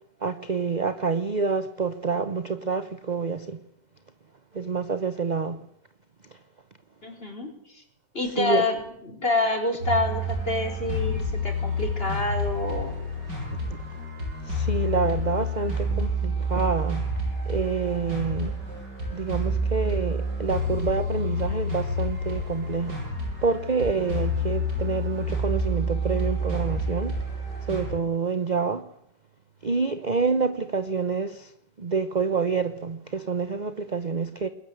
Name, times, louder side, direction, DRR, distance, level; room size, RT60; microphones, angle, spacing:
voice 1, 0.2-3.6 4.5-5.6 8.4-8.6 14.4-17.1 17.5-18.6 19.1-23.0 23.4-27.1 27.7-28.8 29.6-31.5 31.8-34.5, right 5 dB, 35° right, 0.9 m, -27 dB
voice 2, 7.0-7.8 8.1-8.8 9.0-13.0, left 2 dB, 35° left, 4.8 m, -27 dB
sound 1, 9.8-27.9, equal, 85° right, 8.8 m, -29 dB
21.5 x 20.0 x 8.0 m
omnidirectional pair, 1.8 m